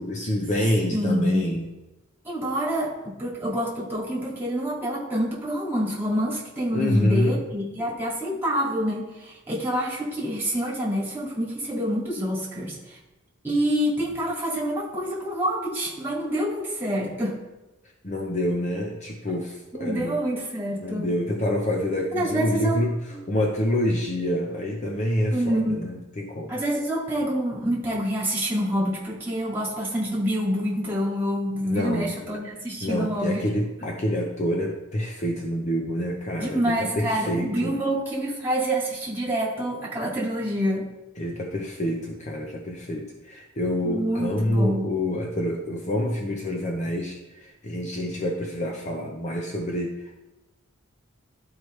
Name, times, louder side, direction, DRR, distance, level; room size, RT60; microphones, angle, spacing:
voice 1, 0.0-1.6 6.7-7.4 18.0-20.2 20.8-22.9 23.3-26.5 31.6-32.1 32.8-37.7 41.2-49.9, left 1 dB, 35° left, 0 dB, 0.7 m, -27 dB
voice 2, 0.9-1.5 2.2-13.0 13.4-17.4 19.7-21.1 22.1-22.8 23.1-23.2 25.3-25.9 26.5-33.4 36.4-40.9 43.8-44.9, equal, 10° right, -5 dB, 2.2 m, -27 dB
12.0 x 4.7 x 3.2 m, 1.0 s
head